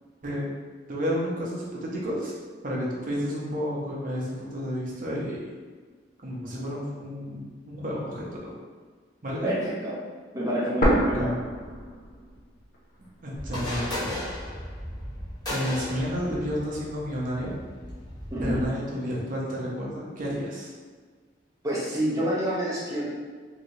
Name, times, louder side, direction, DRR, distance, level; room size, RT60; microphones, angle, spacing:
voice 1, 0.9-2.3 2.6-5.4 6.2-8.5 9.2-9.5 11.1-11.3 13.2-14.1 15.5-17.5 18.4-20.7, equal, 45° right, -4 dB, 0.8 m, -31 dB
voice 2, 9.4-10.0 10.3-11.3 18.3-18.7 21.6-23.1, right 1 dB, 20° right, -7 dB, 0.8 m, -27 dB
sound 1, 10.8-12.8 13.0-13.1 13.9-14.8, equal, 50° left, 0.6 m, -27 dB
sound 2, 13.4-18.7, left 1 dB, 25° left, 0.9 m, -35 dB
3.2 x 2.9 x 2.7 m, 1.5 s
head